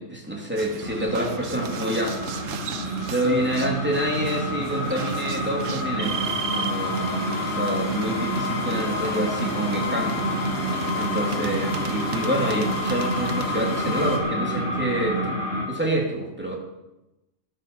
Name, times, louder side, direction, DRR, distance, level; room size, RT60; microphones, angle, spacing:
voice 1, 0.0-2.2 2.8-10.3 10.6-10.7 11.0-16.6, right 1 dB, 10° right, -1 dB, 2.8 m, -27 dB
sound 1, 0.6-13.5, right 8 dB, 75° right, 1.2 m, -37 dB
sound 2, 0.8-15.6, right 1 dB, 10° left, 4.0 m, -29 dB
sound 3, 6.0-14.2, left 5 dB, 85° left, 2.5 m, -32 dB
13.0 x 13.0 x 5.5 m, 0.95 s
omnidirectional pair, 1.4 m